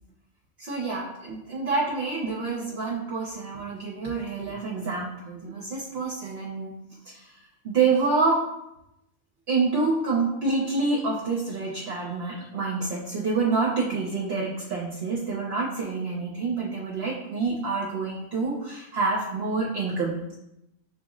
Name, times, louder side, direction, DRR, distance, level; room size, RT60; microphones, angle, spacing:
voice 1, 0.6-6.7 7.1-7.3 7.6-8.5 9.5-20.3, right 4 dB, 60° right, -3 dB, 0.8 m, -27 dB
5.6 x 2.0 x 3.6 m, 0.86 s
omnidirectional pair, 1.3 m